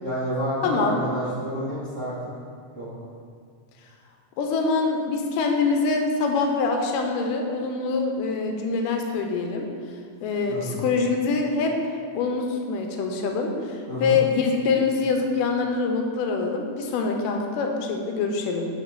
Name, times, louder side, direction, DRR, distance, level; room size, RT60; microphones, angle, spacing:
voice 1, 0.0-2.1 2.7-2.9 10.5-10.8 13.9-14.2, equal, 80° right, -11 dB, 0.6 m, -29 dB
voice 2, 0.6-1.0 4.4-9.7 10.2-18.7, left 4 dB, 90° left, 3 dB, 2.3 m, -25 dB
6.8 x 3.8 x 4.3 m, 2.2 s
omnidirectional pair, 3.7 m